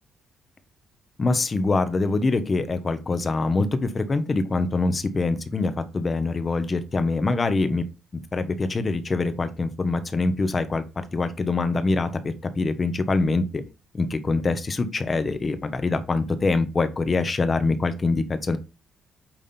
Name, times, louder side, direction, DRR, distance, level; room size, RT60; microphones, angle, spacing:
voice 1, 1.2-7.8 8.1-10.8 11.1-13.6 13.9-18.6, left 3 dB, 35° left, 10 dB, 1.2 m, -24 dB
9.0 x 3.6 x 4.3 m, 0.28 s
cardioid pair, 90°, 0 cm